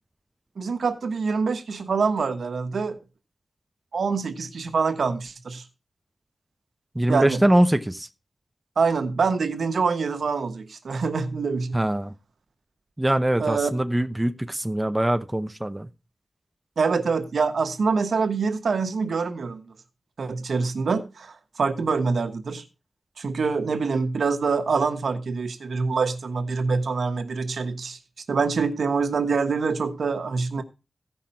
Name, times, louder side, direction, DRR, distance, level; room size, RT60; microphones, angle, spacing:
voice 1, 0.6-3.0 3.9-5.6 7.1-7.4 8.8-11.8 13.4-13.7 16.8-19.7 20.2-22.6 23.2-28.0 28.3-30.6, right 4 dB, 85° right, 1.2 m, -25 dB
voice 2, 6.9-8.1 11.7-12.1 13.0-15.9, right 1 dB, 15° right, 0.7 m, -22 dB
15.0 x 5.8 x 4.4 m
wide cardioid pair, 130°, 0 cm